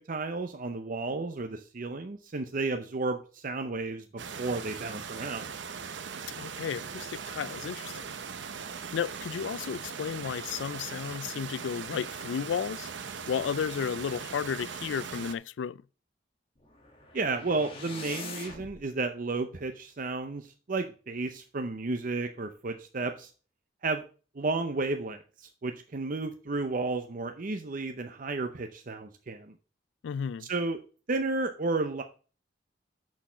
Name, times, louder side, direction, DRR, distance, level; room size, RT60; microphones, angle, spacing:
voice 1, 0.1-4.0 4.4-5.5 17.1-23.3 23.8-24.0 24.3-29.5 30.4-30.8 31.1-32.0, right 3 dB, 50° right, 0.6 m, -32 dB
sound 1, 4.2-15.3, right 6 dB, 80° right, 0.7 m, -40 dB
voice 2, 6.4-7.9 8.9-12.9 13.3-15.8 30.0-30.5, left 7 dB, 85° left, 0.3 m, -33 dB
sound 2, 16.6-18.8, left 3 dB, 30° left, 1.7 m, -43 dB
6.4 x 6.2 x 5.6 m
head